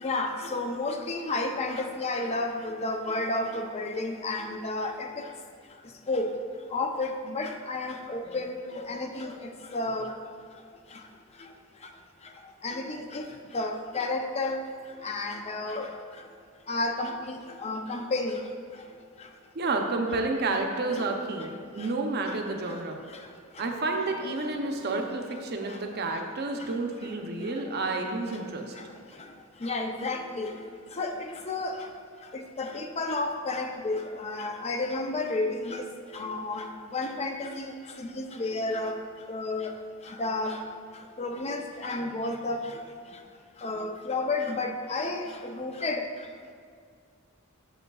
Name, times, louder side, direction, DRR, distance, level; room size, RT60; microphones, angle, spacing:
voice 1, 0.0-5.1 6.1-6.3 6.7-9.3 9.7-10.1 12.6-13.2 13.5-14.6 15.0-15.9 16.7-17.1 17.6-18.4 29.6-30.5 31.0-31.1 31.5-31.7 32.6-35.8 36.1-36.6 36.9-37.7 38.0-38.9 39.3-39.7 40.2-40.6 41.2-42.6 43.6-45.3 45.5-46.0, left 2 dB, 30° left, 5 dB, 0.5 m, -31 dB
voice 2, 19.5-23.0 23.6-28.7, right 3 dB, 50° right, 3 dB, 0.6 m, -30 dB
7.9 x 6.8 x 2.3 m, 2.1 s
head